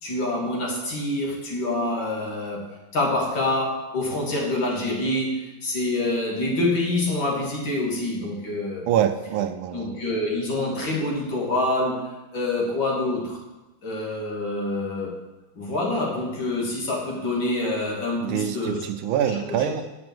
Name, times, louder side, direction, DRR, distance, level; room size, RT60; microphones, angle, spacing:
voice 1, 0.0-2.7 2.9-8.9 9.7-13.4 13.8-15.2 15.5-18.8 19.2-19.7, left 2 dB, 65° left, -3 dB, 3.1 m, -26 dB
voice 2, 8.9-10.0 18.2-19.8, right 9 dB, 80° right, 8 dB, 1.5 m, -25 dB
8.4 x 6.1 x 7.8 m, 1.0 s
omnidirectional pair, 2.3 m